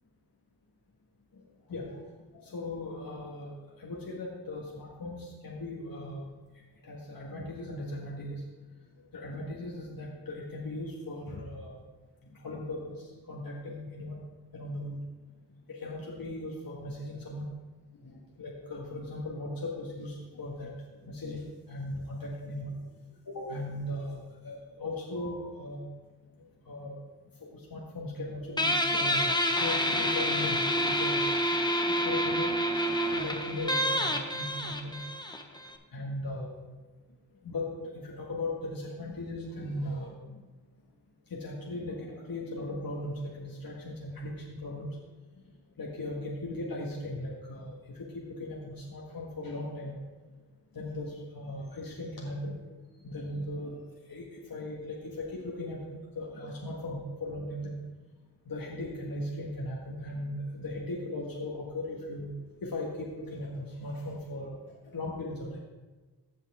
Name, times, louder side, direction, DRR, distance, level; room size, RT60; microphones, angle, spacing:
voice 1, 1.7-2.0 2.3-6.3 6.8-8.4 9.1-11.7 12.4-14.2 14.5-15.0 15.7-17.5 18.0-20.7 21.0-22.7 23.3-24.2 24.4-25.8 26.6-26.9 27.4-32.5 33.0-35.0 35.9-36.5 37.4-40.4 41.3-45.0 45.8-49.9 50.7-52.5 53.0-53.7 54.1-57.7 58.4-62.3 62.6-65.6, left 1 dB, 55° left, -3 dB, 1.6 m, -38 dB
Guitar, 28.6-35.8, equal, 10° left, 1.1 m, -28 dB
15.5 x 5.5 x 3.5 m, 1.3 s
cardioid pair, 45°, 42 cm